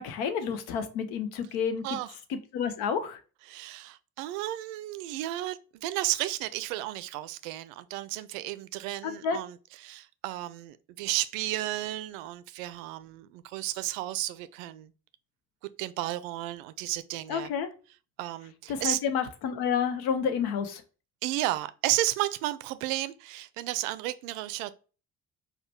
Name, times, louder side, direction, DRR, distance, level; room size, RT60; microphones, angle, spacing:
voice 1, 0.0-1.8 2.3-3.2 9.0-9.4 17.3-17.7 18.7-20.8, left 7 dB, 60° left, 0.8 m, -30 dB
voice 2, 1.8-2.1 3.5-9.6 9.8-14.9 15.8-17.5 18.2-19.0 21.2-24.7, right 15 dB, 65° right, 0.5 m, -33 dB
4.9 x 2.2 x 4.5 m
figure-of-eight pair, 45°, 43 cm